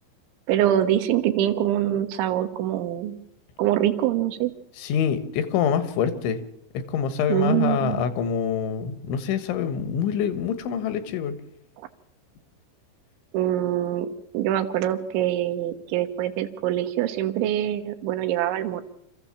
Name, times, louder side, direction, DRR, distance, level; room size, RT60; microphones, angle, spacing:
voice 1, 0.5-3.2 3.6-4.5 7.3-8.0 13.3-14.1 14.3-18.8, right 12 dB, 75° right, 8 dB, 3.5 m, -24 dB
voice 2, 4.8-6.4 6.8-11.4, left 7 dB, 80° left, 11 dB, 3.6 m, -25 dB
27.0 x 15.0 x 7.3 m, 0.78 s
omnidirectional pair, 5.6 m